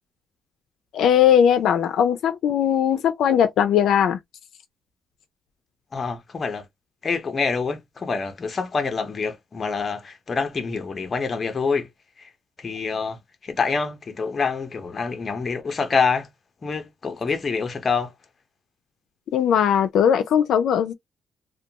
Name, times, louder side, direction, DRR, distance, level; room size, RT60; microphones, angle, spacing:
voice 1, 0.9-4.2 19.3-20.9, left 9 dB, 80° left, 0.3 m, -19 dB
voice 2, 5.9-6.7 7.0-11.9 12.2-12.3 12.6-16.3 16.6-18.1, left 5 dB, 30° left, 0.6 m, -26 dB
2.4 x 2.2 x 2.8 m
cardioid pair, 145°, 0 cm